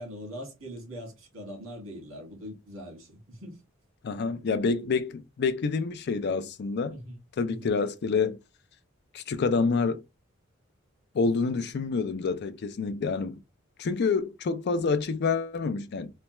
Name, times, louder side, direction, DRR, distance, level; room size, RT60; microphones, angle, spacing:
voice 1, 0.0-3.6 6.9-7.2 7.5-7.7, equal, 80° right, 1.5 m, -42 dB
voice 2, 4.0-7.0 7.4-8.4 9.1-10.0 11.1-13.4 13.8-16.1, left 4 dB, 55° left, 0.4 m, -27 dB
3.2 x 2.2 x 2.9 m
head